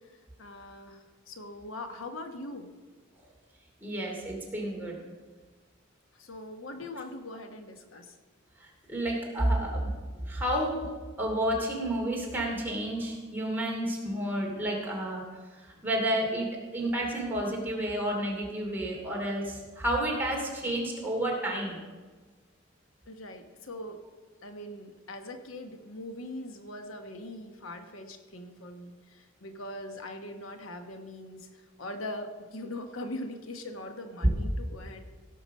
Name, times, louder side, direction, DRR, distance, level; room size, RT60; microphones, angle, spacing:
voice 1, 0.4-2.7 6.2-8.1 23.1-24.0 24.4-31.5 31.8-35.0, left 1 dB, 80° left, 6 dB, 1.1 m, -41 dB
voice 2, 3.8-5.0 8.6-9.9 10.3-10.9 11.2-15.2 15.8-16.5 16.7-21.8, right 1 dB, 10° right, -2 dB, 2.7 m, -30 dB
17.0 x 5.8 x 6.4 m, 1.4 s
head